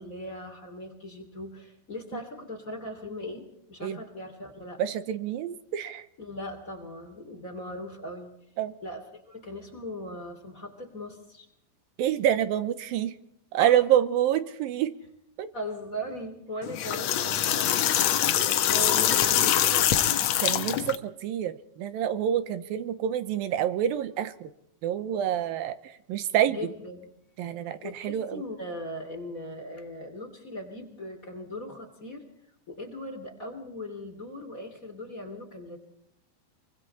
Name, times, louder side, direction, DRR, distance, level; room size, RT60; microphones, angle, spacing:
voice 1, 0.0-4.8 6.2-8.5 8.8-11.5 13.6-13.8 15.5-20.2 26.5-27.1 27.8-32.2 32.7-35.8, left 1 dB, 25° left, 4 dB, 3.0 m, -39 dB
voice 2, 4.8-6.0 8.6-8.7 12.0-13.2 13.5-15.0 15.4-15.5 20.4-24.5 24.8-26.6 27.4-28.4, right 10 dB, 80° right, 12 dB, 2.7 m, -27 dB
sound 1, 16.6-21.0, left 11 dB, 65° left, 1.8 m, -24 dB
25.0 x 24.5 x 4.3 m, 0.71 s
omnidirectional pair, 4.2 m